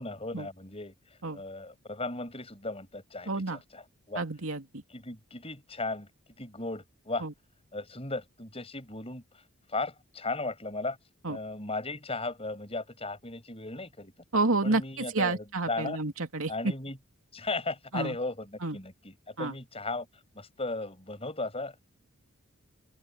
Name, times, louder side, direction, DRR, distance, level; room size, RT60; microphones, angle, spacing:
voice 1, 0.0-4.2 4.9-6.1 6.4-7.3 7.7-9.4 9.7-11.0 11.3-14.1 14.6-16.0 16.5-17.0 17.3-20.1 20.3-21.8, left 2 dB, 30° left, 7.3 m, -36 dB
voice 2, 3.3-3.6 4.2-4.8 7.2-7.3 11.2-11.4 14.3-14.8 15.1-16.5 17.9-18.1 18.6-18.8 19.4-19.5, right 3 dB, 75° right, 2.7 m, -29 dB
open air
head